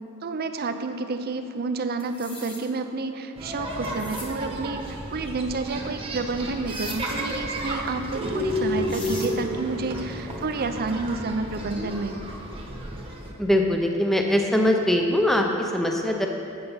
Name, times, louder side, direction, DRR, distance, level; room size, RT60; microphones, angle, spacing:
voice 1, 0.2-4.8 5.1-12.1, right 3 dB, 45° right, 8 dB, 0.5 m, -30 dB
sound 1, 2.0-2.6 3.8-4.3 6.7-7.0 8.5-8.6 8.9-9.3, left 3 dB, 25° left, 1.2 m, -40 dB
sound 2, 3.4-13.3, equal, 25° right, 1.1 m, -32 dB
voice 2, 13.4-16.3, left 1 dB, ahead, 2 dB, 0.6 m, -22 dB
8.1 x 7.8 x 5.6 m, 2.6 s
head